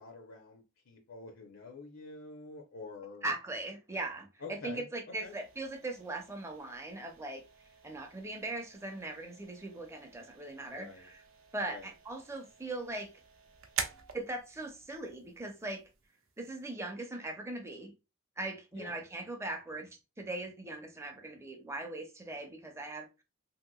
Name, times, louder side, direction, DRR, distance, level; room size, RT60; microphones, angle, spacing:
voice 1, 0.0-3.3 4.4-4.8 5.2-5.3 10.7-11.1 11.7-11.9 18.7-19.0, left 4 dB, 75° left, 0.6 m, -47 dB
voice 2, 3.2-7.4 7.8-11.2 11.5-13.1 14.1-15.8 16.4-17.9 18.4-19.9 20.2-23.1, right 2 dB, 15° right, 0.5 m, -40 dB
sound 1, 5.1-16.7, right 6 dB, 70° right, 0.6 m, -47 dB
3.3 x 2.8 x 2.2 m
head